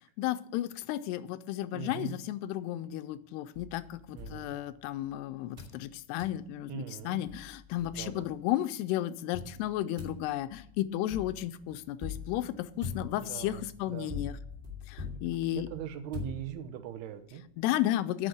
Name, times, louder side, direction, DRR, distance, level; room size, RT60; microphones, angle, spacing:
voice 1, 0.2-14.4 14.9-15.7 17.6-18.3, left 13 dB, 85° left, 13 dB, 2.6 m, -33 dB
voice 2, 1.7-2.1 4.1-4.6 6.7-7.2 7.9-8.3 13.2-14.1 15.5-17.4, right 11 dB, 75° right, 8 dB, 2.9 m, -41 dB
sound 1, 3.5-5.1 5.6-5.8 6.2-6.4 6.9-7.0 7.3-8.4 9.3-16.9, left 5 dB, 20° right, 2.4 m, -43 dB
9.0 x 6.3 x 7.8 m, 0.68 s
omnidirectional pair, 4.8 m